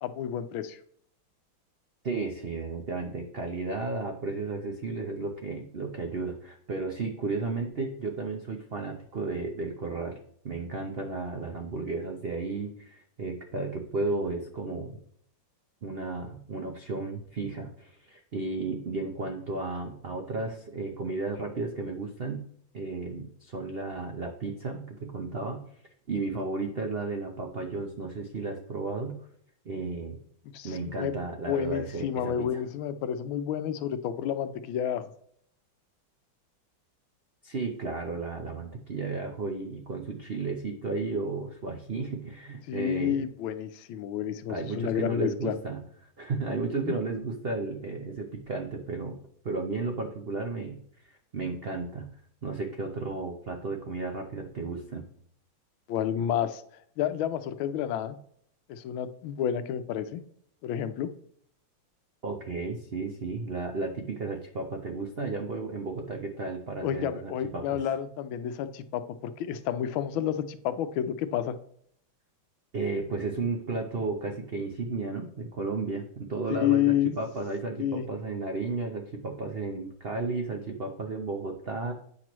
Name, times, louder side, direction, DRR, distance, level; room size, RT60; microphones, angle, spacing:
voice 1, 0.0-0.8 30.5-31.1 31.5-35.1 42.7-45.6 46.8-47.0 55.9-56.6 57.0-58.2 58.7-60.2 60.6-61.1 66.8-71.6 76.5-77.2 77.8-78.0, left 10 dB, 85° left, 11 dB, 1.4 m, -30 dB
voice 2, 2.0-10.2 10.4-15.0 15.8-22.5 22.7-25.6 26.1-29.2 29.6-30.2 30.6-32.6 37.4-43.3 44.5-49.2 49.4-50.8 51.0-52.1 52.4-55.1 62.2-67.8 72.7-81.9, right 3 dB, 80° right, 3 dB, 0.5 m, -33 dB
8.7 x 6.0 x 3.0 m, 0.65 s
omnidirectional pair, 2.2 m